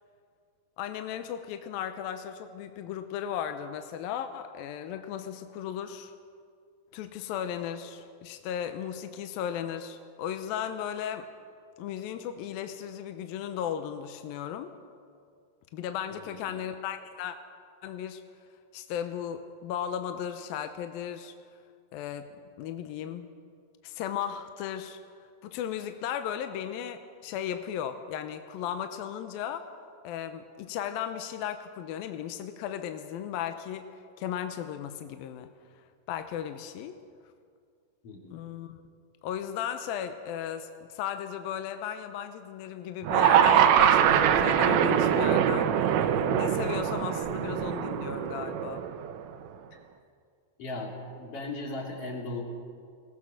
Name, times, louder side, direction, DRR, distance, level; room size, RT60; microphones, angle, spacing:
voice 1, 0.8-6.1 6.9-11.3 11.8-14.7 15.7-17.4 17.8-18.2 18.7-21.3 21.9-22.3 22.6-23.3 23.8-25.0 25.4-29.7 30.0-33.9 34.2-35.5 36.1-37.0 38.3-38.8 39.2-48.9, left 9 dB, 75° left, 8 dB, 2.4 m, -36 dB
voice 2, 16.2-16.6 38.0-38.3 49.7-49.8 50.6-52.4, left 2 dB, 40° left, 0 dB, 3.4 m, -37 dB
sound 1, 43.0-49.3, right 9 dB, 80° right, 2.6 m, -23 dB
22.0 x 18.5 x 6.4 m, 2.2 s
omnidirectional pair, 4.6 m